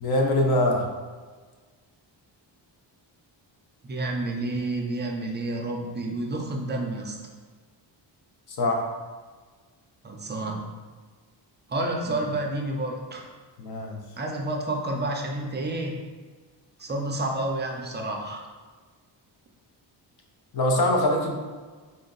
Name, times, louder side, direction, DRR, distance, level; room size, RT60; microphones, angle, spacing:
voice 1, 0.0-0.9 8.5-8.9 12.1-12.2 13.6-14.0 20.5-21.4, left 1 dB, 55° left, 1 dB, 0.7 m, -23 dB
voice 2, 3.8-7.2 10.0-10.7 11.7-13.2 14.2-16.0 16.8-18.5, right 2 dB, 25° right, 1 dB, 0.3 m, -30 dB
3.8 x 2.6 x 3.8 m, 1.4 s
wide cardioid pair, 175°, 45 cm